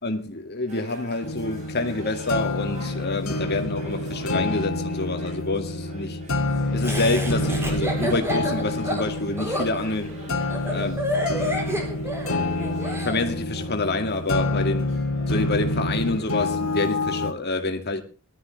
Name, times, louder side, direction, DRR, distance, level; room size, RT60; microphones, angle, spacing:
voice 1, 0.0-6.2 6.7-10.2 10.7-11.1 12.9-14.9 15.3-18.0, left 2 dB, 45° left, 2.2 m, -27 dB
sound 1, 0.7-16.5, right 1 dB, 30° right, 6.9 m, -43 dB
sound 2, 1.2-17.3, left 2 dB, 75° left, 2.4 m, -28 dB
Laughter, 6.8-13.2, equal, 10° right, 3.7 m, -29 dB
20.5 x 13.0 x 3.3 m
head